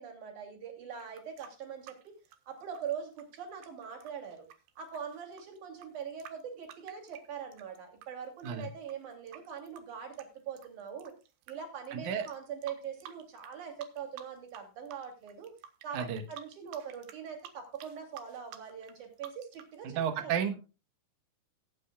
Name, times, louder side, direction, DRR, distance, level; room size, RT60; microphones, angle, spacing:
voice 1, 0.0-2.1 2.5-4.4 4.8-11.1 11.5-15.5 15.8-20.4, right 7 dB, 45° right, 3 dB, 3.9 m, -42 dB
sound 1, 0.9-8.1 8.4-11.5 11.9-12.0 12.3-13.5 13.8-14.6 14.9-19.8, right 9 dB, 75° right, 2.9 m, -51 dB
voice 2, 11.9-12.3 15.9-16.2 19.8-20.5, right 8 dB, 90° right, 6 dB, 1.7 m, -32 dB
19.5 x 8.8 x 2.3 m, 0.30 s
omnidirectional pair, 5.1 m